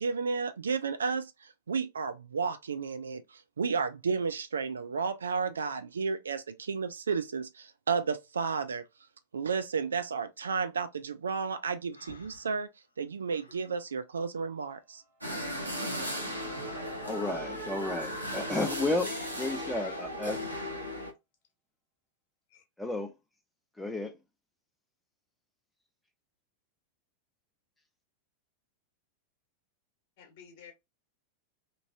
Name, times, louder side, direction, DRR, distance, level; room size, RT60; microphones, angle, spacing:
voice 1, 0.0-8.8 9.3-12.7 13.0-15.0, right 5 dB, 70° right, 0.3 m, -32 dB
Breathing, 11.9-13.7, left 3 dB, 75° left, 0.5 m, -53 dB
sound 1, 14.5-19.7, right 2 dB, 10° right, 1.1 m, -56 dB
sound 2, 15.2-21.1, equal, 85° right, 0.8 m, -36 dB
voice 2, 17.1-19.1 19.4-20.4 22.8-23.1 23.8-24.2, left 2 dB, 5° left, 0.5 m, -32 dB
voice 3, 19.0-20.1 22.5-22.6 30.2-30.7, left 6 dB, 45° left, 1.0 m, -48 dB
2.9 x 2.6 x 2.2 m
figure-of-eight pair, 90°, 0 cm